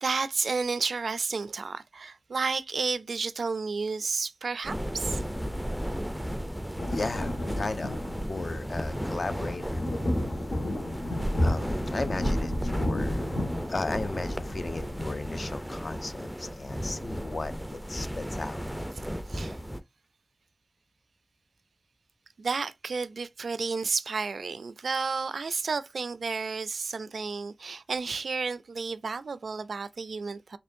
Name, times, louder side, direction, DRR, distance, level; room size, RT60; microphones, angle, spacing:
voice 1, 0.0-5.2 19.0-19.6 22.4-30.6, right 4 dB, 80° right, 0.3 m, -31 dB
sound 1, 4.6-19.8, equal, ahead, 0.4 m, -34 dB
sound 2, 6.8-15.0, left 1 dB, 90° left, 1.7 m, -33 dB
voice 2, 6.9-8.0 8.3-9.9 10.8-10.9 11.4-13.3 13.7-18.6, left 3 dB, 50° left, 0.5 m, -35 dB
4.3 x 3.0 x 2.6 m
wide cardioid pair, 100°, 0 cm